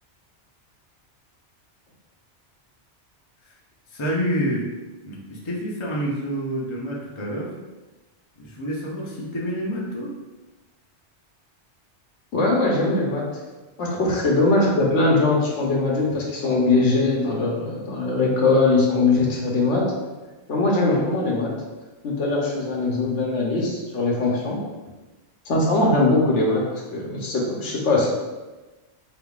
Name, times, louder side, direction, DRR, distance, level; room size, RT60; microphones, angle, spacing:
voice 1, 3.9-4.7 5.0-7.5 8.4-10.1 14.1-14.2, equal, 30° left, -3 dB, 0.7 m, -28 dB
voice 2, 12.3-13.4 13.8-19.9 20.5-21.5 22.0-24.6 25.5-26.6 26.9-28.1, left 2 dB, 80° left, -2 dB, 1.2 m, -21 dB
4.7 x 3.6 x 2.4 m, 1.2 s
omnidirectional pair, 1.2 m